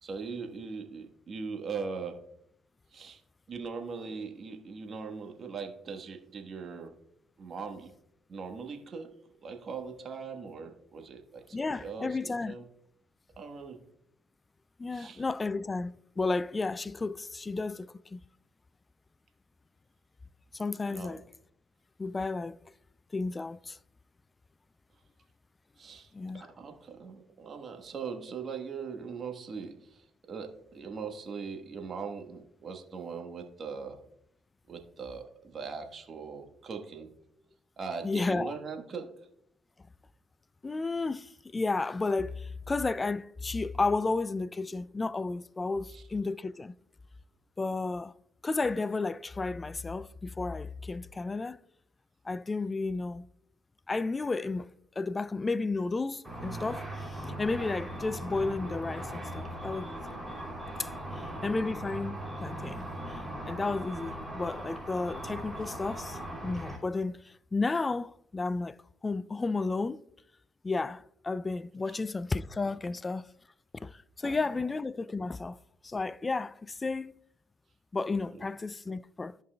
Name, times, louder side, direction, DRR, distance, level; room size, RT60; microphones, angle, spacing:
voice 1, 0.0-2.2 2.9-3.2 3.5-6.9 7.4-7.9 8.3-9.2 9.4-12.6 13.4-13.8 14.9-15.2 20.9-21.2 25.8-34.0 34.7-37.1 37.8-39.2 45.9-46.0 61.1-61.6 71.9-72.0 72.9-73.0 74.2-74.6 78.3-78.5, right 5 dB, 50° right, 1.2 m, -40 dB
voice 2, 11.5-12.5 14.8-18.2 20.5-21.2 22.0-22.6 23.1-23.8 26.1-26.5 38.0-38.6 40.6-46.7 47.6-48.1 48.4-51.6 52.3-53.3 53.9-54.7 55.0-60.2 60.8-60.9 61.2-68.8 69.0-70.0 70.6-73.3 73.7-75.6 75.8-77.2 77.9-79.4, left 3 dB, 30° left, 0.3 m, -32 dB
Car / Traffic noise roadway noise / Engine, 56.2-66.8, right 1 dB, 5° right, 2.9 m, -39 dB
13.5 x 5.4 x 2.2 m
supercardioid pair, 60°, 0 cm